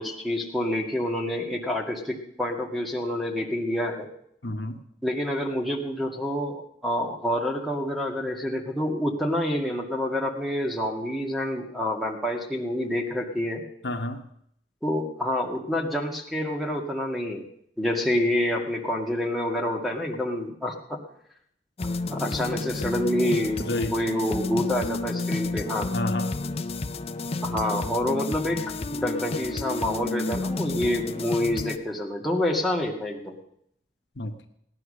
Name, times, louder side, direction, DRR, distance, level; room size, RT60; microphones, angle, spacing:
voice 1, 0.0-4.1 5.0-13.6 14.8-17.5 17.8-21.0 22.1-23.6 23.9-25.9 27.4-28.6 28.9-33.4, left 1 dB, ahead, -2 dB, 2.0 m, -27 dB
voice 2, 4.4-4.8 13.8-14.2 23.6-23.9 25.9-26.4 34.2-34.5, left 1 dB, 75° left, 4 dB, 1.3 m, -30 dB
sound 1, 21.8-31.8, left 3 dB, 35° left, 0.6 m, -31 dB
17.0 x 10.5 x 6.5 m, 0.71 s
head